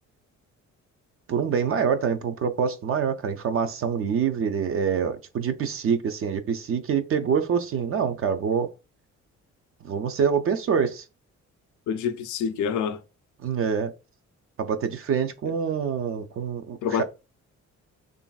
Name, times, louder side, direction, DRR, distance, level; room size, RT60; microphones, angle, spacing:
voice 1, 1.3-8.7 9.8-11.0 13.4-13.9 14.6-17.0, right 7 dB, 50° right, 0.4 m, -25 dB
voice 2, 11.9-13.0 15.5-15.6 16.8-17.0, left 7 dB, 75° left, 0.5 m, -27 dB
3.1 x 2.5 x 2.2 m
cardioid pair, 90°, 30 cm